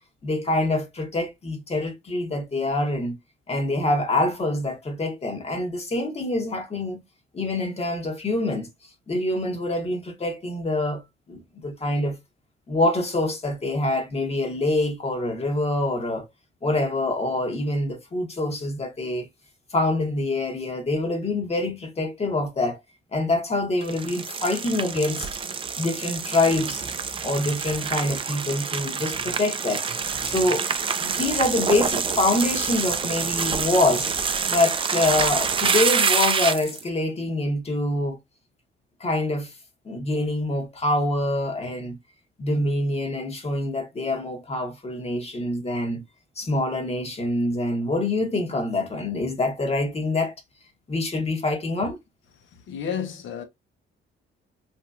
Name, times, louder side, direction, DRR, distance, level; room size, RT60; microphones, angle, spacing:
voice 1, 0.2-3.2 3.5-7.0 7.3-8.7 9.1-11.0 11.3-12.2 12.7-16.2 16.6-19.3 19.7-22.8 23.1-25.3 25.8-26.8 27.2-29.8 30.3-30.7 31.0-34.1 34.5-38.2 39.0-39.5 39.8-42.0 42.4-46.0 46.4-50.3 50.9-52.0, left 2 dB, 30° left, 1.1 m, -25 dB
sound 1, 23.8-36.8, right 6 dB, 25° right, 0.3 m, -27 dB
voice 2, 52.5-53.4, left 7 dB, 75° left, 0.9 m, -31 dB
2.9 x 2.7 x 2.4 m
cardioid pair, 90°, 20 cm